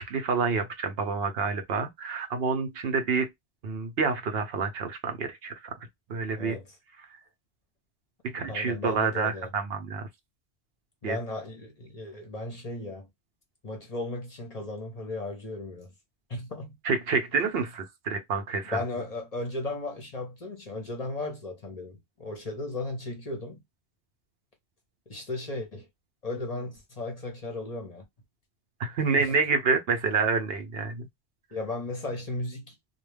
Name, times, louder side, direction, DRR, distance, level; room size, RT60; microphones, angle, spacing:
voice 1, 0.0-3.3 3.6-5.7 6.1-6.6 8.2-10.1 11.0-11.2 16.8-18.8 28.8-31.1, right 5 dB, 70° right, 0.8 m, -28 dB
voice 2, 6.4-6.8 8.5-9.5 11.0-13.1 13.6-15.9 16.3-16.7 18.7-23.6 25.1-25.9 26.2-28.0 29.2-29.3 31.5-32.7, left 2 dB, 40° left, 0.7 m, -35 dB
2.3 x 2.2 x 3.1 m
omnidirectional pair, 1.1 m